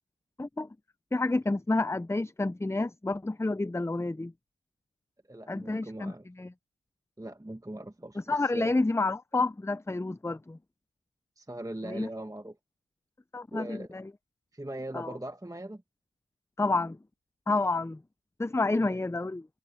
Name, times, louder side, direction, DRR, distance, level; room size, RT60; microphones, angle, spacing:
voice 1, 1.1-4.3 5.5-6.5 8.3-10.6 11.8-12.1 13.3-14.0 14.9-15.2 16.6-17.0 17.5-18.0 18.4-19.5, left 2 dB, 10° left, 0.5 m, -29 dB
voice 2, 5.3-6.3 7.2-8.7 11.4-12.6 13.5-13.9 14.5-15.8 18.8-19.0, right 1 dB, 10° right, 1.2 m, -40 dB
cardioid pair, 40°, 31 cm